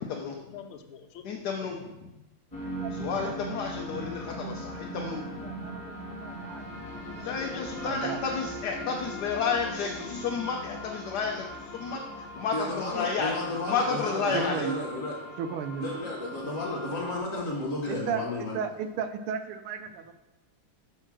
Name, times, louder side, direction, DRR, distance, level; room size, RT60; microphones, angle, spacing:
voice 1, 0.0-1.7 7.2-8.3 8.8-10.3 17.3-17.4 18.1-18.3 18.6-18.9, left 7 dB, 85° left, 5 dB, 1.6 m, -46 dB
voice 2, 1.2-1.8 2.9-5.7 7.1-13.4 13.7-14.7, left 5 dB, 65° left, 1 dB, 1.1 m, -31 dB
sound 1, 2.5-17.2, equal, 20° left, 1.7 m, -40 dB
voice 3, 2.8-3.6 5.0-7.2 7.8-8.2 14.3-14.7 15.4-15.9 17.9-18.2 18.5-20.1, right 7 dB, 80° right, 9 dB, 1.5 m, -35 dB
voice 4, 12.5-15.2 15.8-18.6, left 2 dB, 45° left, -3 dB, 1.4 m, -33 dB
5.7 x 5.5 x 6.1 m, 1.0 s
omnidirectional pair, 2.3 m